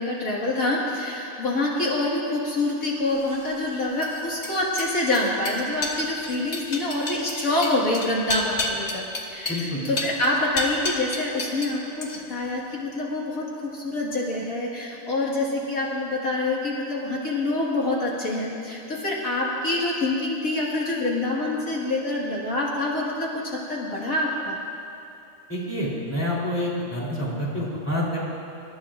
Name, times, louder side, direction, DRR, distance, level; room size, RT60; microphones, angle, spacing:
voice 1, 0.0-24.6, left 2 dB, 75° left, -5 dB, 2.4 m, -26 dB
sound 1, 3.2-11.7 12.0-12.5, left 3 dB, 50° left, 1.5 m, -32 dB
voice 2, 9.5-9.8 25.5-28.2, left 1 dB, 10° left, -7 dB, 3.5 m, -27 dB
27.5 x 13.5 x 2.5 m, 2.7 s
omnidirectional pair, 1.5 m